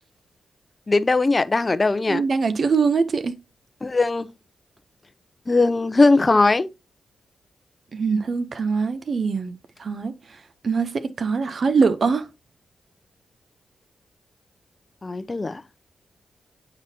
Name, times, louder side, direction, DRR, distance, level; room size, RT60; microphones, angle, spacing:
voice 1, 0.9-2.2 3.8-4.3 5.5-6.7 15.0-15.6, left 3 dB, 35° left, 0.6 m, -19 dB
voice 2, 2.1-3.4 7.9-9.5 9.8-10.1 10.6-12.3, right 5 dB, 60° right, 0.6 m, -22 dB
8.7 x 4.0 x 2.7 m
supercardioid pair, 50°, 0 cm